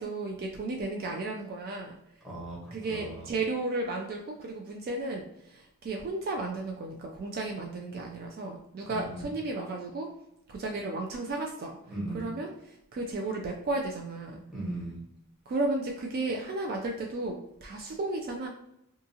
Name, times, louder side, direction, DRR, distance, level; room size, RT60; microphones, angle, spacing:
voice 1, 0.0-2.0 2.7-10.1 10.5-11.8 12.1-14.4 15.5-18.5, right 2 dB, 45° right, 1 dB, 0.3 m, -34 dB
voice 2, 2.2-3.3 8.9-9.3 11.9-12.3 14.5-15.0, right 2 dB, ahead, -7 dB, 1.0 m, -38 dB
2.7 x 2.4 x 2.7 m, 0.78 s
head